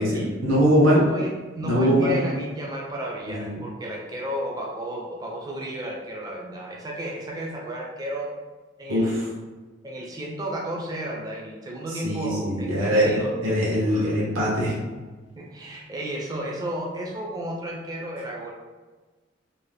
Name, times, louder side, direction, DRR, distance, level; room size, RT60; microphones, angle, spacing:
voice 1, 0.0-1.0 1.6-2.1 3.3-3.5 8.9-9.3 12.0-14.8, equal, 80° right, -5 dB, 0.7 m, -22 dB
voice 2, 0.9-8.4 8.8-9.3 9.8-13.3 13.8-14.1 15.4-18.5, right 1 dB, 20° right, -2 dB, 0.4 m, -33 dB
2.6 x 2.0 x 3.2 m, 1.3 s
head